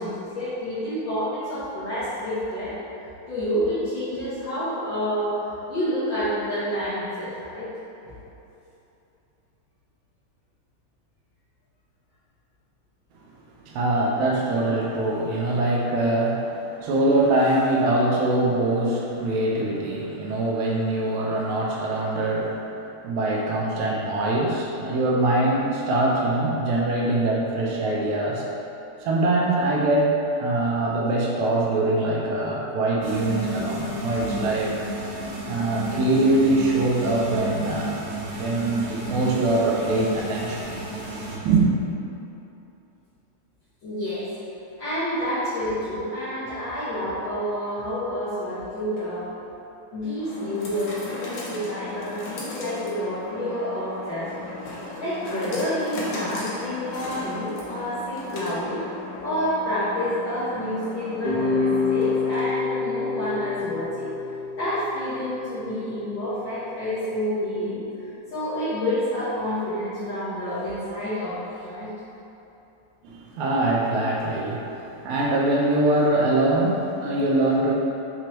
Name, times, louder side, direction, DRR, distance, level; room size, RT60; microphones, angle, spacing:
voice 1, 0.0-2.7 3.3-5.4 5.7-7.7 43.8-44.3 44.8-49.3 49.9-54.5 55.0-58.8 59.2-64.1 64.5-67.8 68.3-71.9, equal, 70° left, -14 dB, 1.1 m, -28 dB
voice 2, 13.7-22.7 23.0-28.5 29.0-34.7 35.5-38.0 38.4-40.7 41.4-41.7 73.0-77.7, right 2 dB, 80° right, -3 dB, 1.8 m, -23 dB
sound 1, 33.0-41.4, right 1 dB, 60° right, 1.4 m, -32 dB
sound 2, 48.8-62.7, left 2 dB, 85° left, 2.3 m, -38 dB
sound 3, 61.2-66.3, left 4 dB, 50° left, 2.4 m, -27 dB
5.9 x 3.0 x 2.9 m, 2.9 s
omnidirectional pair, 3.5 m